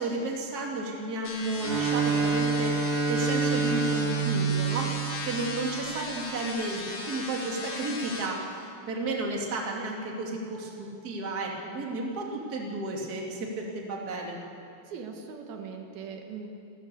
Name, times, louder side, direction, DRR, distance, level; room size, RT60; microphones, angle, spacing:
voice 1, 0.0-14.4, right 2 dB, 30° right, 0 dB, 2.5 m, -33 dB
sound 1, 1.2-8.3, left 3 dB, 45° left, 4.0 m, -37 dB
Bowed string instrument, 1.6-5.9, right 5 dB, 55° right, 3.9 m, -27 dB
voice 2, 14.9-16.5, right 6 dB, 85° right, 3 dB, 3.6 m, -40 dB
29.5 x 14.0 x 6.9 m, 2.5 s
omnidirectional pair, 4.2 m